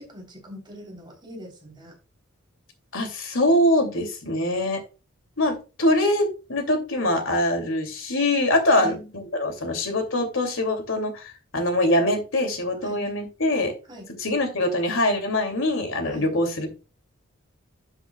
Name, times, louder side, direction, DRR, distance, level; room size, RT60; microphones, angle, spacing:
voice 1, 0.0-1.9 8.7-9.1 12.8-13.1 13.9-14.0 16.0-16.3, equal, 20° right, 0 dB, 3.4 m, -42 dB
voice 2, 2.9-4.8 5.4-13.7 14.2-16.7, left 1 dB, 70° left, 5 dB, 2.6 m, -23 dB
12.0 x 8.1 x 2.3 m, 0.32 s
head